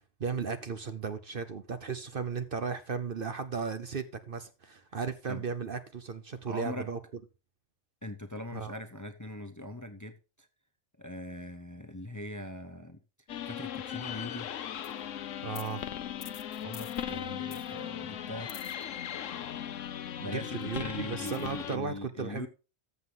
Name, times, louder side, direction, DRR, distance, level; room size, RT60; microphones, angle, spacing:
voice 1, 0.2-7.0 8.5-8.7 15.4-15.8 20.2-22.5, right 5 dB, 50° right, 0.9 m, -35 dB
voice 2, 6.5-6.9 8.0-10.1 11.0-13.0 13.5-14.5 16.6-18.5 20.2-22.5, left 1 dB, 15° left, 0.8 m, -41 dB
sound 1, 13.3-21.8, left 10 dB, 75° left, 1.1 m, -38 dB
14.0 x 7.6 x 3.9 m
omnidirectional pair, 1.3 m